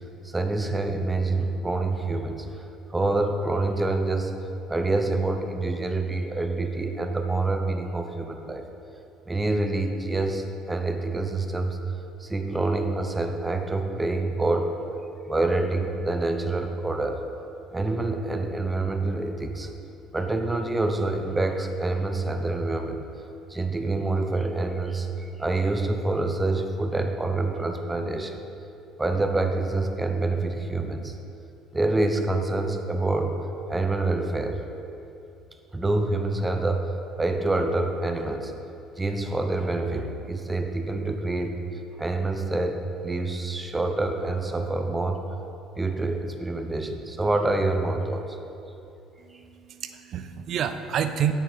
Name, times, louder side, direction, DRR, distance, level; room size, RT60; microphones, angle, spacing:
voice 1, 0.2-2.6 2.9-4.3 4.7-8.6 9.3-11.8 12.2-14.7 15.3-17.2 17.7-19.7 20.1-23.0 23.5-28.4 29.0-31.2 31.7-33.4 33.7-34.6 35.7-36.8 37.2-38.5 39.0-41.5 42.0-45.2 45.8-48.4, right 2 dB, 15° right, 5 dB, 0.8 m, -26 dB
voice 2, 49.2-51.3, right 9 dB, 60° right, 9 dB, 0.5 m, -29 dB
8.3 x 6.5 x 4.1 m, 2.8 s
supercardioid pair, 75°, 0 cm